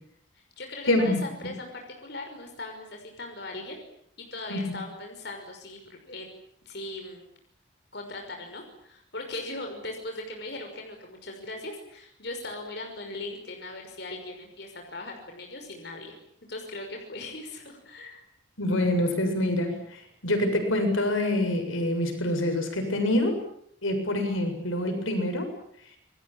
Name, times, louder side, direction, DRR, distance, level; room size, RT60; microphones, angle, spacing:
voice 1, 0.3-3.8 4.2-6.3 6.7-7.3 7.9-16.2 16.5-18.2, left 2 dB, 55° left, 3 dB, 5.8 m, -39 dB
voice 2, 0.9-1.2 4.5-4.6 18.6-23.4 23.8-25.5, left 1 dB, 90° left, 6 dB, 7.3 m, -26 dB
28.5 x 21.5 x 8.9 m, 0.67 s
head